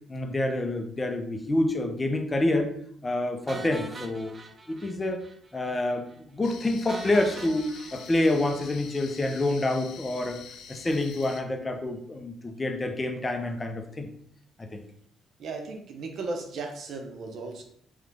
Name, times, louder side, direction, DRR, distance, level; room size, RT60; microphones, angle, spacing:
voice 1, 0.1-2.7 3.0-4.3 4.7-5.2 5.5-6.1 6.3-7.6 7.9-10.4 10.7-14.1 14.6-14.8, left 2 dB, 25° left, 5 dB, 0.6 m, -27 dB
sound 1, 3.5-5.4 5.6-5.8 6.1-6.2 6.9-9.2, right 3 dB, 35° right, 0.4 m, -43 dB
sound 2, 6.4-11.4, left 6 dB, 75° left, 0.5 m, -46 dB
voice 2, 15.4-17.6, right 3 dB, 65° right, 3 dB, 0.8 m, -36 dB
3.6 x 3.2 x 3.4 m, 0.65 s
cardioid pair, 90°, 0 cm